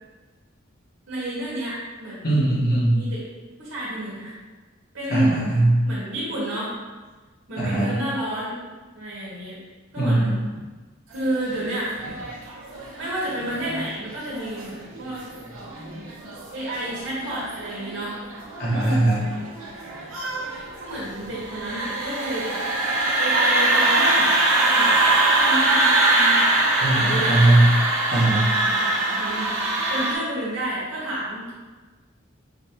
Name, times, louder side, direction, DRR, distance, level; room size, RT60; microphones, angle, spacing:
voice 1, 1.1-2.4 2.9-3.3 3.6-4.3 4.9-5.4 5.8-6.7 7.5-8.6 8.9-9.6 9.9-10.3 11.1-11.9 13.0-15.2 16.5-18.2 18.7-19.1 20.5-22.6 23.2-24.3 24.6-25.0 25.4-26.5 26.9-27.4 28.6-28.9 29.2-29.6 29.9-31.5, right 1 dB, 60° right, -8 dB, 1.2 m, -30 dB
voice 2, 2.2-3.0 5.1-5.8 7.6-7.9 10.0-10.3 18.6-19.2 26.8-27.7 28.1-28.5, right 2 dB, 50° left, -7 dB, 1.3 m, -19 dB
sound 1, 11.3-30.1, right 2 dB, 85° right, 0.9 m, -23 dB
5.2 x 2.7 x 2.8 m, 1.3 s
head